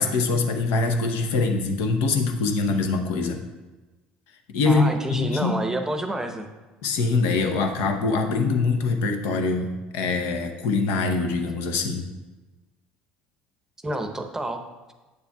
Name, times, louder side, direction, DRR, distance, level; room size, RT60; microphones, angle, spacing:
voice 1, 0.0-3.4 4.5-4.8 5.1-5.5 6.8-12.1, left 4 dB, 70° left, 5 dB, 0.8 m, -23 dB
voice 2, 4.7-6.5 13.8-14.6, right 1 dB, 10° right, 5 dB, 0.8 m, -28 dB
8.3 x 6.9 x 2.3 m, 1.2 s
hypercardioid pair, 70°, 4 cm